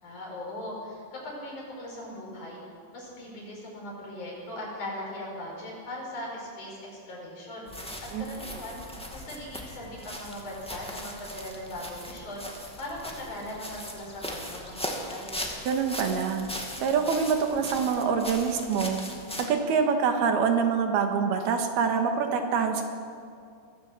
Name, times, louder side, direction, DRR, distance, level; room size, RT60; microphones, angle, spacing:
voice 1, 0.0-2.6 2.9-7.7 8.1-8.8 9.1-15.3, left 1 dB, 50° left, -3 dB, 6.7 m, -39 dB
sound 1, 7.7-19.5, equal, 5° left, 0.7 m, -39 dB
voice 2, 15.7-16.4 16.8-19.0 19.4-22.8, right 6 dB, 80° right, 5 dB, 3.4 m, -25 dB
22.5 x 14.5 x 7.8 m, 2.3 s
omnidirectional pair, 4.5 m